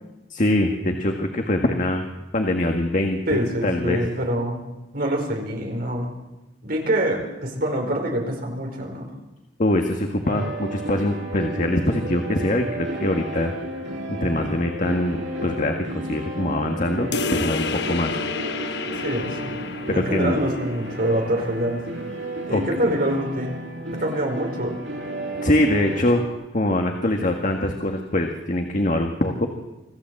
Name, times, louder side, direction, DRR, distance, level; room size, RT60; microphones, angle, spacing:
voice 1, 0.3-2.0 2.3-4.0 9.6-13.5 14.1-18.1 18.5-18.9 19.9-20.4 22.5-22.6 25.4-26.2 26.5-29.5, left 1 dB, 45° left, 3 dB, 1.8 m, -23 dB
voice 2, 3.3-4.6 4.9-6.1 6.6-9.1 18.9-19.6 19.9-21.8 22.5-23.6 24.0-24.8, right 1 dB, 55° right, 1 dB, 4.8 m, -25 dB
sound 1, 10.2-26.3, right 1 dB, 75° right, 5.9 m, -33 dB
sound 2, 17.1-22.2, left 4 dB, 65° left, 1.0 m, -31 dB
26.0 x 15.0 x 7.8 m, 1.0 s
head